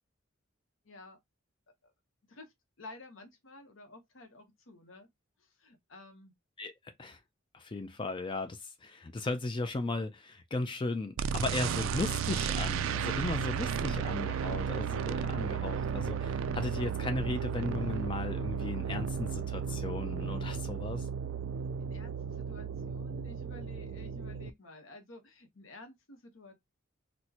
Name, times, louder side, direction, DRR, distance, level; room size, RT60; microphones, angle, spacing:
voice 1, 0.8-1.2 1.8-1.9 2.2-5.1 5.4-6.3 21.8-26.5, left 2 dB, 70° left, 0.9 m, -52 dB
voice 2, 7.5-21.1, left 3 dB, 25° left, 0.3 m, -36 dB
sound 1, 11.2-24.5, right 7 dB, 75° right, 0.3 m, -34 dB
4.3 x 2.1 x 2.8 m
head